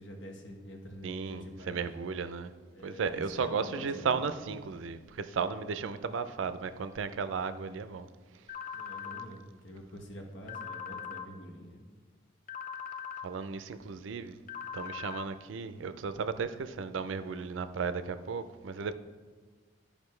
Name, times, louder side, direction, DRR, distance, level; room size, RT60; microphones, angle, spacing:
voice 1, 0.0-1.8 2.7-4.3 8.7-11.8, equal, 70° left, 1.1 m, -46 dB
voice 2, 1.0-2.5 2.8-8.1 13.2-14.4 14.7-18.9, right 5 dB, 80° right, 0.4 m, -35 dB
sound 1, 8.5-9.3 10.5-11.3 12.5-13.3 14.5-15.3, left 8 dB, 45° left, 0.5 m, -40 dB
10.5 x 5.0 x 3.2 m
head